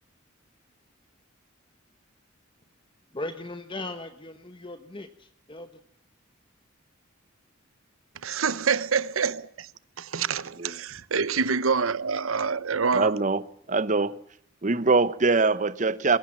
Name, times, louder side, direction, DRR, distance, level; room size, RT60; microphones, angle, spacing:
voice 1, 3.1-5.7, left 2 dB, 25° left, 1.0 m, -38 dB
voice 2, 8.2-9.7 10.0-13.2, right 5 dB, 80° right, 0.9 m, -26 dB
voice 3, 12.9-14.1 14.6-16.2, right 3 dB, 35° right, 0.8 m, -23 dB
21.0 x 16.5 x 8.8 m
head